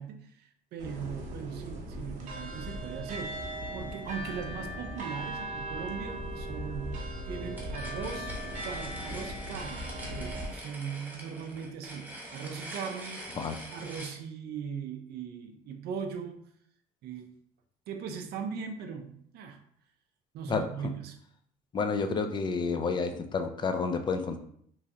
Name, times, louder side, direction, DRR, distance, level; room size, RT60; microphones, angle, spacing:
voice 1, 0.0-3.4 3.7-8.3 8.6-13.3 13.7-16.4 17.0-17.3 17.9-19.6 20.3-21.2, right 6 dB, 70° right, 6 dB, 0.5 m, -39 dB
sound 1, 0.8-10.5, right 1 dB, 45° right, 0.8 m, -38 dB
sound 2, 7.5-14.2, right 1 dB, 10° right, 0.9 m, -44 dB
voice 2, 21.7-24.4, left 4 dB, 25° left, 7 dB, 0.3 m, -30 dB
3.1 x 2.4 x 2.6 m, 0.65 s
cardioid pair, 110°, 17 cm